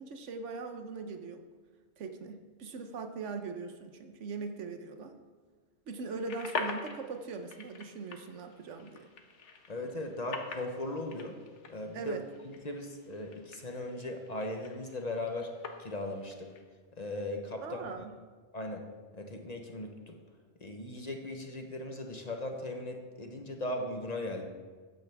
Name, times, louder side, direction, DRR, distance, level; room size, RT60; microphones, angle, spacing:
voice 1, 0.0-1.4 2.0-5.2 5.9-9.1 11.9-12.2 17.6-18.1, right 4 dB, 85° right, 6 dB, 1.2 m, -40 dB
sound 1, 6.1-16.6, left 4 dB, 85° left, 1.3 m, -44 dB
voice 2, 9.7-11.4 11.7-12.2 12.4-15.5 15.8-16.5 17.0-17.9 18.5-18.8 19.1-20.2 20.6-24.4, left 1 dB, 35° left, 3 dB, 1.0 m, -38 dB
14.0 x 9.3 x 3.5 m, 1.5 s
omnidirectional pair, 1.2 m